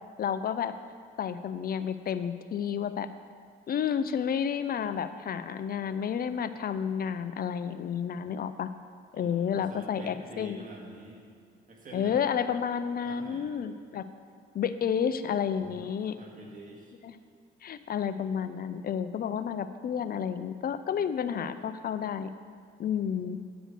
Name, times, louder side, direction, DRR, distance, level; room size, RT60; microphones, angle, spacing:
voice 1, 0.2-0.7 1.2-3.1 3.7-8.7 9.1-10.6 11.9-14.1 14.5-16.2 17.0-17.1 17.6-22.3 22.8-23.4, left 8 dB, 50° left, 12 dB, 0.5 m, -31 dB
voice 2, 9.1-11.3 11.7-12.4 13.0-13.5 15.8-16.9 23.0-23.3, right 2 dB, 40° right, -1 dB, 1.9 m, -47 dB
8.9 x 5.0 x 6.5 m, 2.2 s
cardioid pair, 90°, 20 cm